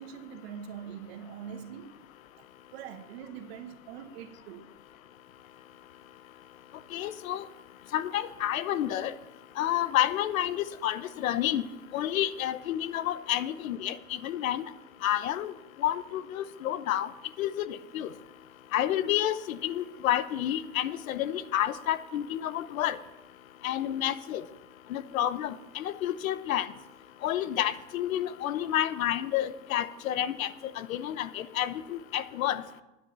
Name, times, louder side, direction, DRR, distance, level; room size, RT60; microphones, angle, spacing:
voice 1, 0.0-1.9 2.4-2.5 2.7-4.7 14.4-14.5, right 8 dB, 50° right, 1.4 m, -43 dB
voice 2, 6.9-7.4 7.9-9.1 9.6-11.6 11.9-14.7 15.0-15.5 15.8-17.1 17.4-18.1 18.7-23.0 23.6-24.4 24.9-26.7 27.2-30.5 30.8-32.6, left 12 dB, 90° left, 0.9 m, -30 dB
10.0 x 9.4 x 6.8 m
supercardioid pair, 170°, 40 cm